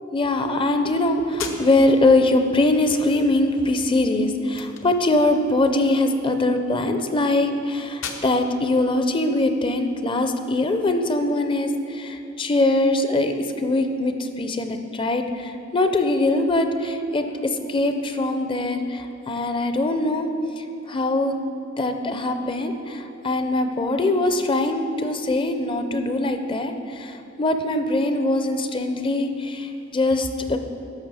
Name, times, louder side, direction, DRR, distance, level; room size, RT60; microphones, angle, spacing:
voice 1, 0.1-20.3 20.6-21.4 21.8-30.6, left 2 dB, 25° left, 7 dB, 0.5 m, -22 dB
sound 1, 1.3-10.2, left 5 dB, 70° left, 0.9 m, -42 dB
11.5 x 6.7 x 4.8 m, 2.9 s
head